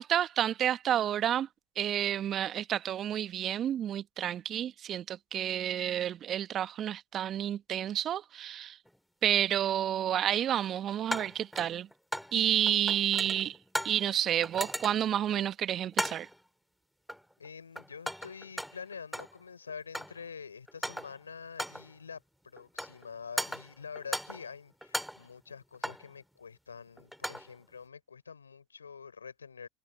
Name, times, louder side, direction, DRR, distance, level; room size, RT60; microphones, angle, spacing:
voice 1, 0.0-1.5 1.8-8.8 9.2-11.9 12.3-13.6 13.8-16.3, right 10 dB, 40° right, 1.2 m, -30 dB
sound 1, 8.9-9.0 11.1-12.4 12.7-14.1 14.4-15.2 15.9-16.4 17.1-17.5 17.8-19.4 19.7-20.3 20.7-21.2 21.6-21.9 22.6-23.1 23.4-24.5 24.8-26.1 27.0-27.5, equal, ahead, 4.5 m, -37 dB
voice 2, 17.4-29.7, left 6 dB, 90° left, 4.3 m, -46 dB
hypercardioid pair, 75°, 0 cm